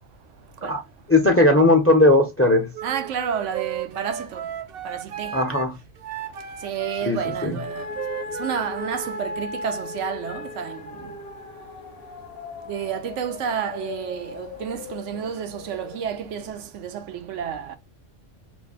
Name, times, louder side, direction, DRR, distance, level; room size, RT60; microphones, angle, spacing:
voice 1, 1.1-2.7 5.3-5.7 7.0-7.6, left 2 dB, 15° left, 0.5 m, -18 dB
Wind instrument woodwind instrument, 2.7-9.2, right 9 dB, 55° right, 0.8 m, -35 dB
voice 2, 2.8-4.5 4.8-5.4 6.6-7.9 8.3-11.1 12.7-17.8, right 8 dB, 75° right, 0.9 m, -30 dB
sound 1, 7.6-16.5, left 4 dB, 55° left, 0.8 m, -37 dB
3.1 x 2.1 x 4.0 m
omnidirectional pair, 1.3 m